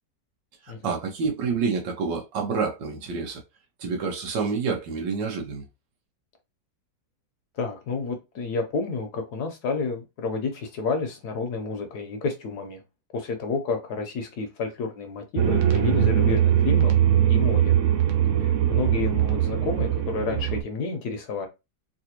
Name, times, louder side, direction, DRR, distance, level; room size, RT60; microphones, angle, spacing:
voice 1, 0.6-3.4 3.8-5.6, right 5 dB, 80° right, 1.6 m, -28 dB
voice 2, 7.6-12.8 13.1-16.9 17.3-17.7 18.4-21.5, left 4 dB, 70° left, 1.2 m, -30 dB
sound 1, 15.4-20.6, right 10 dB, 60° right, 0.8 m, -21 dB
4.0 x 2.6 x 2.8 m
omnidirectional pair, 1.9 m